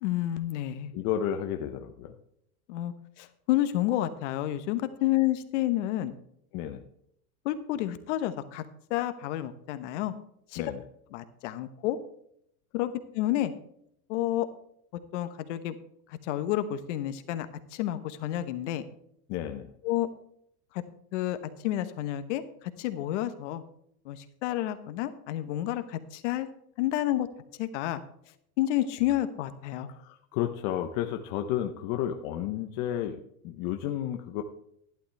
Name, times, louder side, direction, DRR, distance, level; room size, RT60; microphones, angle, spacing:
voice 1, 0.0-0.9 2.7-6.1 7.4-8.6 8.9-10.1 10.5-10.6 11.1-12.0 12.7-13.5 14.1-14.5 15.1-15.7 16.1-18.8 19.8-20.1 20.7-20.8 21.1-21.4 21.6-22.4 22.8-23.6 24.0-26.5 26.8-27.3 27.6-28.0 28.6-29.9, left 13 dB, 50° left, 11 dB, 1.1 m, -30 dB
voice 2, 0.9-2.1 6.5-6.8 10.6-10.8 19.3-19.7 29.9-34.4, left 10 dB, 30° left, 5 dB, 0.6 m, -32 dB
11.5 x 11.0 x 3.3 m, 0.71 s
supercardioid pair, 165°, 46 cm